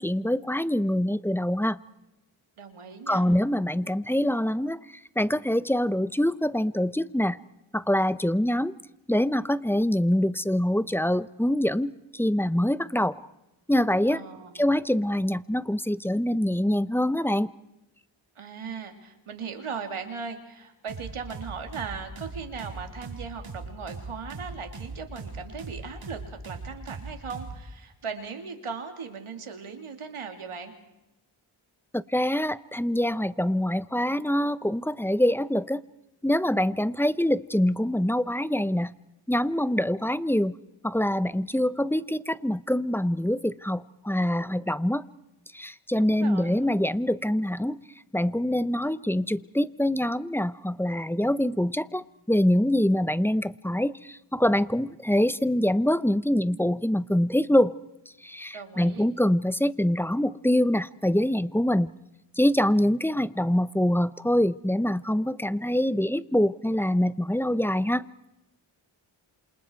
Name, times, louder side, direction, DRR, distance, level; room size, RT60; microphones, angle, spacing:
voice 1, 0.0-1.8 3.1-7.4 7.7-8.7 9.1-13.2 13.7-14.2 14.5-17.5 31.9-35.8 36.2-38.9 39.3-40.6 40.8-45.0 45.5-47.8 48.1-57.8 58.2-61.9 62.4-68.1, left 1 dB, 5° left, 16 dB, 0.8 m, -25 dB
voice 2, 2.6-3.2 14.1-14.6 18.3-30.7 45.9-46.6 58.5-59.1, right 5 dB, 85° right, 6 dB, 3.1 m, -38 dB
sound 1, 20.9-27.6, right 4 dB, 70° right, 4.6 m, -39 dB
27.5 x 27.5 x 4.7 m, 0.93 s
cardioid pair, 60°, 49 cm